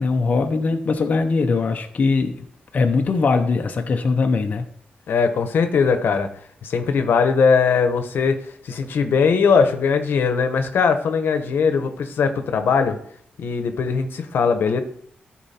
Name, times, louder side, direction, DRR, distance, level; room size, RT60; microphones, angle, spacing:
voice 1, 0.0-2.5 2.7-4.6, left 4 dB, 45° left, 3 dB, 0.8 m, -21 dB
voice 2, 5.1-6.3 6.6-8.4 8.6-13.0 13.4-14.8, left 5 dB, 80° left, 8 dB, 1.0 m, -20 dB
13.5 x 4.6 x 4.3 m, 0.64 s
wide cardioid pair, 155°, 4 cm